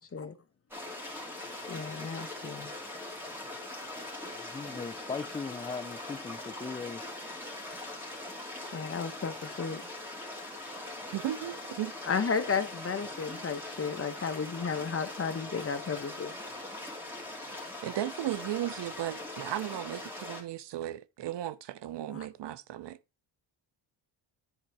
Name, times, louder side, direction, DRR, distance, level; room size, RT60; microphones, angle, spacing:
sound 1, 0.7-20.4, left 2 dB, 5° right, 2.5 m, -41 dB
voice 1, 1.7-2.7 8.7-9.8 12.1-16.3 22.1-22.3, left 5 dB, 30° left, 1.0 m, -33 dB
voice 2, 4.3-7.1, left 5 dB, 15° left, 0.3 m, -39 dB
voice 3, 11.1-11.9 17.8-23.0, right 13 dB, 70° right, 0.7 m, -35 dB
10.0 x 3.9 x 4.7 m
cardioid pair, 130°, 44 cm